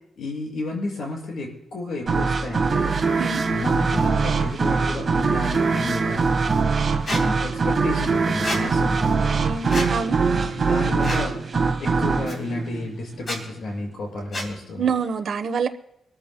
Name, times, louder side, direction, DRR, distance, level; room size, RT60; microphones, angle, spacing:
voice 1, 0.2-3.0 3.5-6.3 7.1-9.5 10.3-14.8, left 2 dB, 70° left, 6.0 m, -32 dB
sound 1, 2.1-13.5, right 4 dB, 40° right, 1.4 m, -22 dB
Squeak, 7.1-7.2 8.4-8.6 9.7-9.9 11.0-11.3 12.3-12.4 13.2-13.4 14.3-14.5, left 1 dB, 30° left, 3.3 m, -28 dB
voice 2, 9.4-10.2 14.8-15.7, right 6 dB, 60° right, 0.9 m, -26 dB
25.5 x 14.0 x 2.2 m
wide cardioid pair, 145°, 0 cm